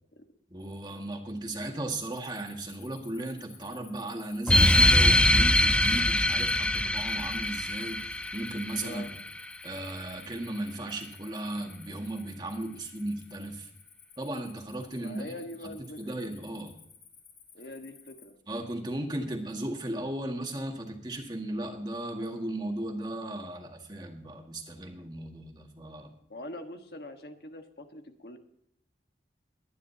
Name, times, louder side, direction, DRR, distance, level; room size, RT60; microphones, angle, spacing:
voice 1, 0.5-9.1 9.6-13.7 14.2-15.3 15.6-16.8 18.5-26.1, right 1 dB, 25° right, 2 dB, 1.9 m, -36 dB
Cricket, 2.0-18.3, left 7 dB, 45° left, 4.6 m, -54 dB
sound 1, 4.5-9.5, left 1 dB, 5° left, 0.3 m, -23 dB
voice 2, 8.8-9.1 15.0-16.0 17.5-18.4 26.3-28.4, left 1 dB, 65° left, 5 dB, 1.5 m, -43 dB
22.5 x 10.0 x 2.8 m, 0.71 s
head